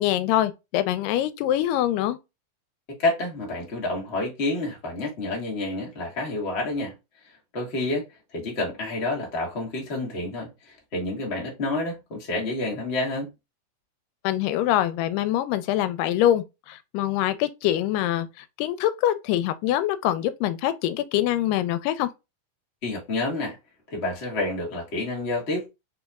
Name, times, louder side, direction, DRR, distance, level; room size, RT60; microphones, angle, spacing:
voice 1, 0.0-2.2 14.2-22.1, left 12 dB, 90° left, 2.2 m, -24 dB
voice 2, 3.0-6.9 7.5-8.0 8.3-13.3 22.8-23.6 23.9-25.7, left 2 dB, 45° left, 0.8 m, -29 dB
4.1 x 4.0 x 2.2 m
omnidirectional pair, 3.7 m